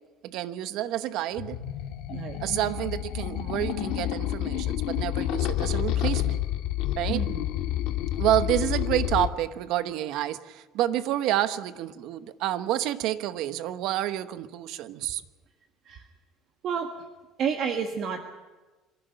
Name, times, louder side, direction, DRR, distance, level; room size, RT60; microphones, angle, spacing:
voice 1, 0.2-1.6 2.4-6.4 7.0-7.2 8.2-15.2, right 12 dB, 70° right, 12 dB, 1.1 m, -29 dB
sound 1, 1.4-9.3, left 13 dB, 75° left, 1.7 m, -29 dB
voice 2, 2.1-2.4 7.1-7.5 15.8-16.1 16.6-17.0 17.4-18.3, right 7 dB, 55° right, 4 dB, 1.6 m, -30 dB
26.5 x 11.5 x 9.2 m, 1.2 s
cardioid pair, 125°, 0 cm